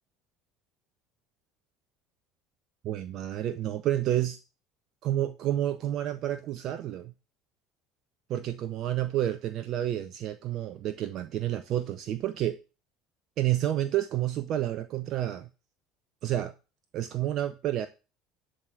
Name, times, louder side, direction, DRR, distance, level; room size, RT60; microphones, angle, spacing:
voice 1, 2.8-4.4 5.0-7.1 8.3-12.6 13.4-15.5 16.2-16.5 16.9-17.9, right 12 dB, 50° right, 0.6 m, -29 dB
11.0 x 4.0 x 7.2 m
figure-of-eight pair, 65°, 0 cm